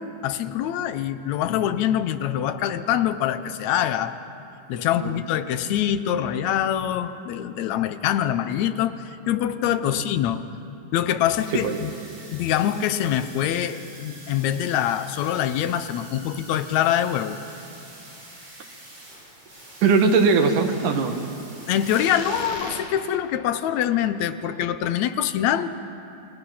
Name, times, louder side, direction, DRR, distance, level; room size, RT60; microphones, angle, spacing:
voice 1, 0.0-4.2 4.7-10.5 10.9-11.9 12.3-17.4 21.7-25.7, left 10 dB, 75° left, 11 dB, 1.9 m, -24 dB
sound 1, 11.4-22.8, right 1 dB, 60° right, 7.4 m, -43 dB
voice 2, 11.5-11.8 19.8-21.2, right 4 dB, 80° right, 5 dB, 3.0 m, -20 dB
27.5 x 22.0 x 5.8 m, 2.8 s
omnidirectional pair, 3.6 m